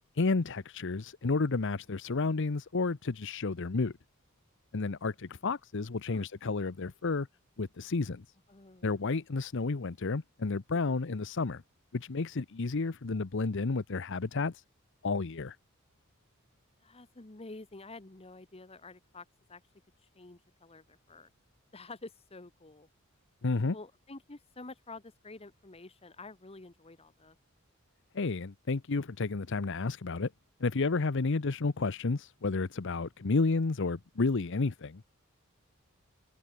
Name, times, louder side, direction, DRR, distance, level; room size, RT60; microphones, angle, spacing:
voice 1, 0.2-3.9 4.7-7.3 7.6-8.2 8.8-11.6 11.9-14.6 15.0-15.6 23.4-23.7 28.1-30.3 30.6-35.0, left 3 dB, 60° left, 0.8 m, -31 dB
voice 2, 8.5-8.9 10.7-11.0 16.8-19.6 20.1-21.3 21.7-22.9 23.7-27.4, left 3 dB, 30° left, 1.2 m, -49 dB
head